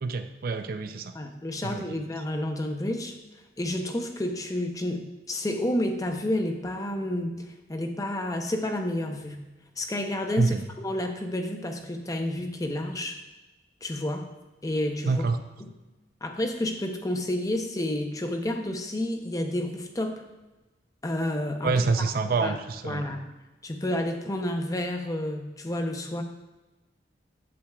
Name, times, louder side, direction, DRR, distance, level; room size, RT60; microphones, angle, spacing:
voice 1, 0.0-1.1 1.6-2.0 10.4-10.6 15.0-15.4 21.6-23.1, right 4 dB, 55° right, 9 dB, 0.4 m, -27 dB
voice 2, 1.1-3.1 3.6-9.4 9.8-13.2 13.8-14.3 14.6-15.2 15.6-15.7 16.2-20.2 21.0-21.7 22.4-22.6 22.8-23.3 23.6-26.2, left 1 dB, 20° left, 4 dB, 0.6 m, -30 dB
8.5 x 7.7 x 2.3 m, 1.1 s
head